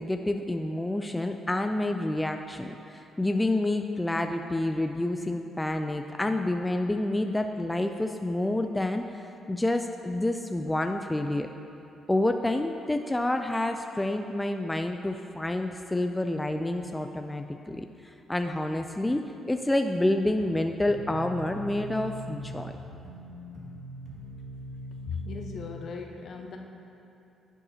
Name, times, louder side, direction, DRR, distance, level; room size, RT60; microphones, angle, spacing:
voice 1, 0.0-9.2 9.5-11.5 12.1-22.7, left 1 dB, 10° left, 5 dB, 0.3 m, -28 dB
sound 1, 20.4-25.7, equal, 60° right, 1.9 m, -41 dB
voice 2, 25.0-26.6, left 4 dB, 60° left, 2 dB, 0.9 m, -37 dB
10.5 x 8.3 x 2.8 m, 2.8 s
cardioid pair, 90°, 0 cm